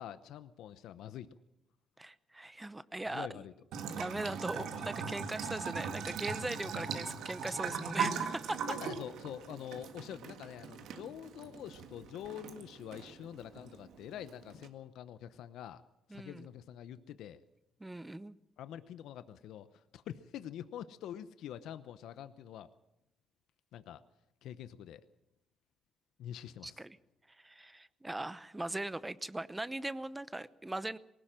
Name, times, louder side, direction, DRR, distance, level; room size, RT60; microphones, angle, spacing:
voice 1, 0.0-1.3 3.1-3.5 8.7-15.8 16.1-17.4 18.6-22.7 23.7-24.0 24.4-25.0 26.2-26.8, left 10 dB, 85° left, 12 dB, 0.8 m, -46 dB
voice 2, 2.0-3.4 3.9-8.6 16.1-16.5 17.8-18.4 26.6-27.0 27.4-31.0, right 2 dB, 15° right, 16 dB, 0.8 m, -40 dB
Bathtub (filling or washing) / Trickle dribble, 3.7-14.7, right 6 dB, 85° right, 1.7 m, -40 dB
20.0 x 18.0 x 7.5 m, 0.86 s
cardioid pair, 90°, 0 cm